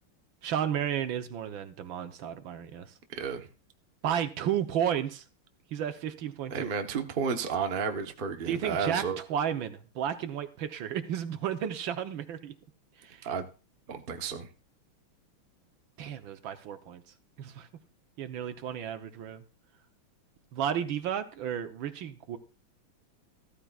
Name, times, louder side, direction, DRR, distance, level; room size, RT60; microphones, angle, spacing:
voice 1, 0.4-2.9 4.0-5.2 5.7-6.7 8.5-12.5 13.0-13.2 16.0-17.0 17.4-17.7 18.2-19.4 20.5-22.4, right 9 dB, 70° right, 1.6 m, -33 dB
voice 2, 3.2-3.5 6.5-9.2 13.2-13.5 13.9-14.5, right 6 dB, 35° right, 0.9 m, -32 dB
14.5 x 13.5 x 2.4 m
omnidirectional pair, 2.3 m